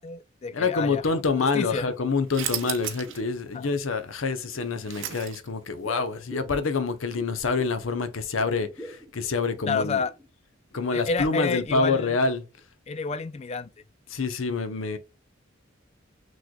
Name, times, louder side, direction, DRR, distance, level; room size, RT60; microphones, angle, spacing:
voice 1, 0.0-1.0 1.4-1.9 3.5-3.7 9.7-10.1 10.9-12.2 12.9-13.7, left 4 dB, 30° left, 0.3 m, -29 dB
voice 2, 0.5-10.0 10.7-12.4 14.1-15.0, left 4 dB, 85° left, 0.7 m, -27 dB
sound 1, 2.3-3.2 3.6-3.7 4.4-5.7, right 10 dB, 70° right, 0.7 m, -34 dB
sound 2, 4.3-4.9 5.8-7.9 8.2-10.3 10.7-10.9 11.3-12.3 12.6-12.7, right 2 dB, ahead, 0.7 m, -46 dB
6.2 x 3.2 x 2.2 m
head